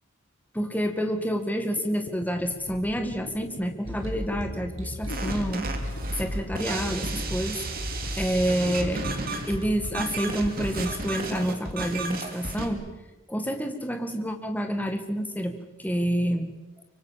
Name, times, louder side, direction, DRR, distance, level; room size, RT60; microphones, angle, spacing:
voice 1, 0.5-5.7 6.2-7.6 8.2-9.1 9.4-12.8 13.3-16.5, equal, 10° left, 6 dB, 2.0 m, -28 dB
sound 1, 1.8-12.2, left 2 dB, 75° left, 1.7 m, -43 dB
sound 2, 3.8-9.0, equal, 60° right, 3.6 m, -35 dB
sound 3, 5.1-12.7, right 3 dB, 45° right, 2.9 m, -33 dB
24.5 x 24.5 x 7.5 m, 1.1 s
head